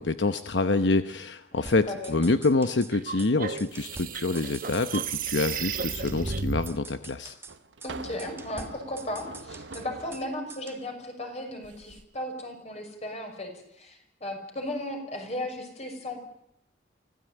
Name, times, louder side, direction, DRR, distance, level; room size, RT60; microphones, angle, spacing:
voice 1, 0.0-7.3, left 3 dB, 75° left, 10 dB, 0.9 m, -26 dB
voice 2, 1.5-2.1 7.8-16.2, left 1 dB, 35° left, 4 dB, 6.0 m, -36 dB
sound 1, 1.7-2.9 3.2-3.3 3.6-5.3 5.5-5.6 5.9-7.6 7.8-7.9 8.2-10.2 10.5-10.8, right 3 dB, 15° right, 1.3 m, -46 dB
sound 2, 2.9-6.7, right 6 dB, 50° right, 1.0 m, -33 dB
sound 3, 6.4-6.5 7.5-10.3 11.6-12.0, right 3 dB, 90° right, 1.2 m, -43 dB
25.0 x 16.5 x 9.1 m, 0.74 s
head